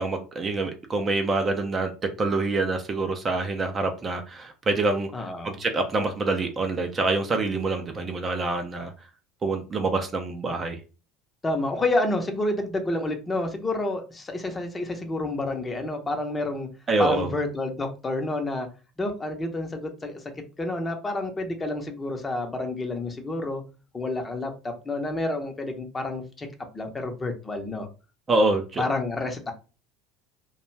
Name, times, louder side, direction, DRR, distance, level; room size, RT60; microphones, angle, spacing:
voice 1, 0.0-1.9 2.2-8.9 9.4-10.8 16.9-17.3 28.3-28.8, right 3 dB, 30° right, 5 dB, 0.5 m, -26 dB
voice 2, 5.1-5.6 11.4-16.7 17.0-18.7 19.0-20.2 20.6-23.6 23.9-26.5 26.7-27.9 28.8-29.5, left 2 dB, 20° left, 4 dB, 0.7 m, -29 dB
2.4 x 2.2 x 3.1 m, 0.33 s
figure-of-eight pair, 70°, 0 cm